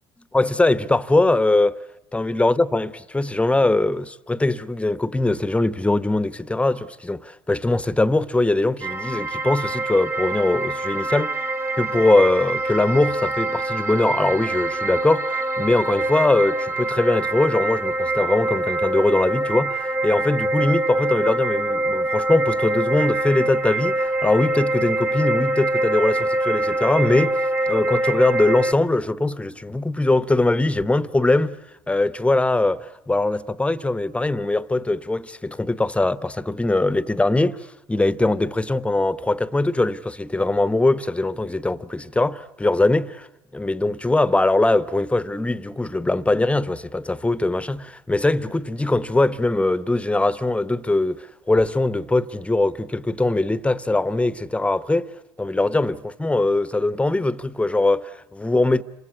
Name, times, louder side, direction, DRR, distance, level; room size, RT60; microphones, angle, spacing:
voice 1, 0.3-1.8 2.1-11.4 11.8-27.4 27.7-31.6 31.9-43.3 43.5-55.1 55.4-58.8, left 2 dB, 10° left, 1.0 m, -21 dB
sound 1, 8.8-28.7, right 2 dB, 20° right, 1.2 m, -24 dB
28.5 x 24.5 x 8.5 m
figure-of-eight pair, 65°, 13 cm